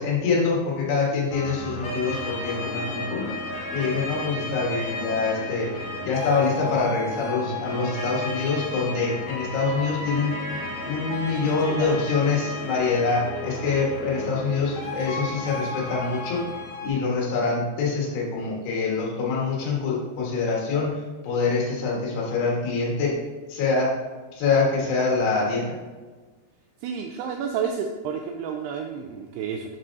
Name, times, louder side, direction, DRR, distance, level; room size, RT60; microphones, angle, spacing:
voice 1, 0.0-3.3 3.7-5.7 6.0-10.3 10.8-16.4 16.8-23.2 23.5-23.9 24.3-25.8, left 4 dB, 75° left, -3 dB, 3.5 m, -25 dB
sound 1, 1.3-16.9, left 1 dB, 55° left, 2.1 m, -33 dB
voice 2, 11.5-11.9 26.8-29.8, right 7 dB, 85° right, 3 dB, 2.4 m, -31 dB
7.5 x 7.4 x 2.6 m, 1.3 s
omnidirectional pair, 4.8 m